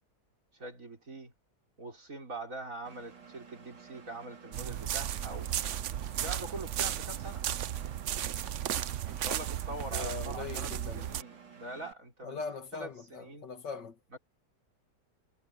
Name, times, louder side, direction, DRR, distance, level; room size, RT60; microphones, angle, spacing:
voice 1, 0.5-1.3 1.8-5.5 6.1-7.4 9.0-12.4 12.8-13.5 14.1-14.2, right 2 dB, 45° right, 5.5 m, -43 dB
Engine, 2.8-11.9, right 6 dB, 85° right, 4.7 m, -53 dB
sound 1, 4.5-11.2, right 11 dB, 60° right, 0.8 m, -35 dB
voice 2, 9.9-11.1 12.2-14.2, left 5 dB, 75° left, 2.4 m, -41 dB
omnidirectional pair, 1.9 m